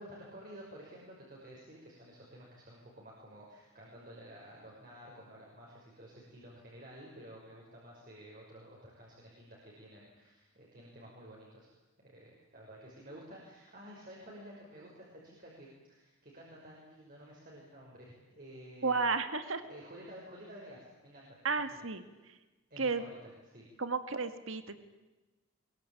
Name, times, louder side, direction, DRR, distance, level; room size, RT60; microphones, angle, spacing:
voice 1, 0.0-11.7 12.0-19.1 19.7-21.5 21.8-21.9 22.7-23.7, equal, 40° right, -3 dB, 6.0 m, -52 dB
voice 2, 18.8-19.6 21.4-22.0 22.8-23.0 23.8-24.8, right 4 dB, 70° right, 10 dB, 1.9 m, -32 dB
23.0 x 23.0 x 8.8 m, 1.1 s
head